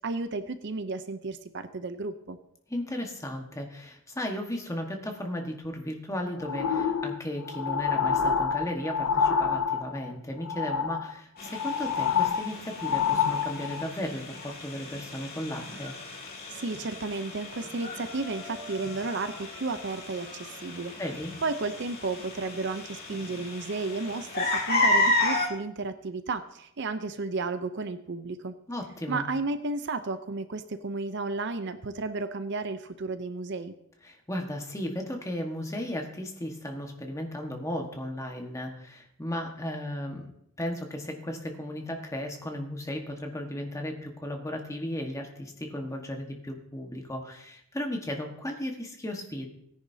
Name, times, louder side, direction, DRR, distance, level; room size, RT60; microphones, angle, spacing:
voice 1, 0.0-2.4 16.5-20.9 21.4-28.6 29.1-33.7, right 3 dB, 55° right, 10 dB, 0.6 m, -33 dB
voice 2, 2.7-15.9 21.0-21.3 28.7-29.2 34.0-40.3 40.6-49.5, left 1 dB, 15° left, 2 dB, 1.4 m, -35 dB
sound 1, 6.4-10.1 10.4-11.1 11.5-13.9 14.5-14.6, left 6 dB, 85° left, 0.6 m, -27 dB
sound 2, 11.4-25.5, left 2 dB, 45° left, 2.6 m, -33 dB
17.0 x 10.0 x 2.8 m, 0.75 s
head